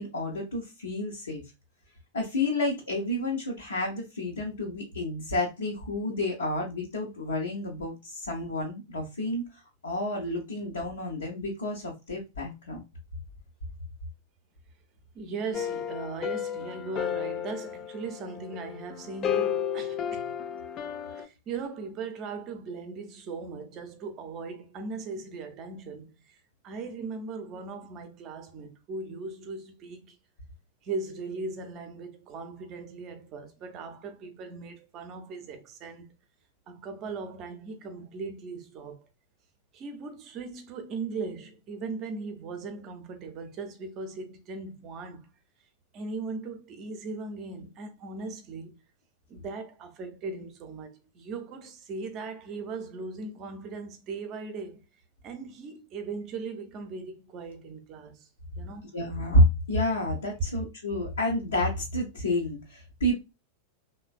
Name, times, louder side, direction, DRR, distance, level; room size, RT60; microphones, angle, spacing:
voice 1, 0.0-1.4 2.1-9.4 9.8-12.8 58.9-63.1, left 1 dB, 70° left, 0.7 m, -29 dB
voice 2, 15.1-20.3 21.1-26.4 26.6-30.2 30.8-36.1 36.7-39.1 39.7-45.3 45.9-48.8 49.3-54.8 55.2-58.3 58.6-58.9, right 4 dB, 35° right, 0.6 m, -38 dB
sound 1, 15.5-21.3, left 9 dB, 30° left, 0.3 m, -33 dB
3.2 x 2.1 x 2.3 m
figure-of-eight pair, 90°, 0 cm